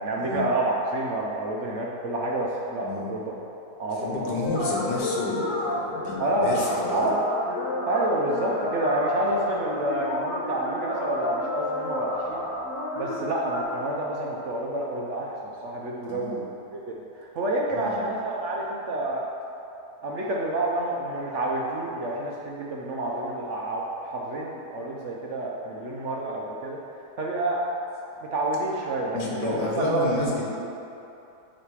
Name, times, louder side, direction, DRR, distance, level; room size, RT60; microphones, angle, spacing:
voice 1, 0.0-3.3 3.8-4.4 6.2-7.3 7.9-12.4 12.9-19.3 20.0-26.8 27.2-27.6 28.3-30.1, right 1 dB, 60° right, -3 dB, 0.8 m, -28 dB
voice 2, 4.0-7.1 16.1-16.4 17.7-18.0 29.1-30.4, left 2 dB, 85° left, -3 dB, 1.7 m, -30 dB
sound 1, 4.4-13.6, left 2 dB, 55° left, 1.6 m, -31 dB
8.5 x 3.3 x 4.7 m, 2.8 s
omnidirectional pair, 1.8 m